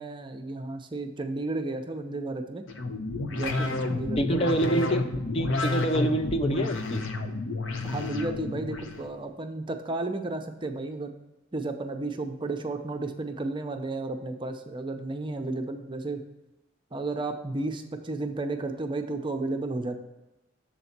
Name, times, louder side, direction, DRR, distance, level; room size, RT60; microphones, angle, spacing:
voice 1, 0.0-2.6 3.3-4.5 7.8-11.1 11.5-16.2 16.9-20.0, right 2 dB, 25° right, 5 dB, 0.6 m, -33 dB
sound 1, 2.7-9.0, left 2 dB, 75° left, 0.8 m, -30 dB
voice 2, 4.2-7.0, right 1 dB, 30° left, 7 dB, 0.5 m, -27 dB
7.1 x 4.1 x 5.8 m, 1.0 s
head